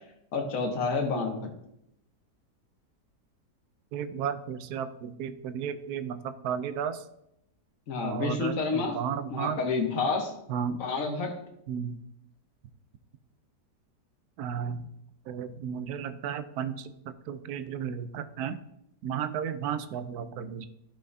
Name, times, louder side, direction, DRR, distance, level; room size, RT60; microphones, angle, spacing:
voice 1, 0.3-1.5 7.9-9.0 9.3-10.3 10.7-11.3, left 4 dB, 55° left, 2 dB, 1.6 m, -29 dB
voice 2, 3.9-7.0 8.0-9.6 10.5-10.8 11.7-12.0 14.4-14.9 15.3-18.6 19.0-20.7, right 8 dB, 75° right, 11 dB, 1.1 m, -34 dB
13.5 x 5.6 x 2.7 m, 0.78 s
omnidirectional pair, 1.8 m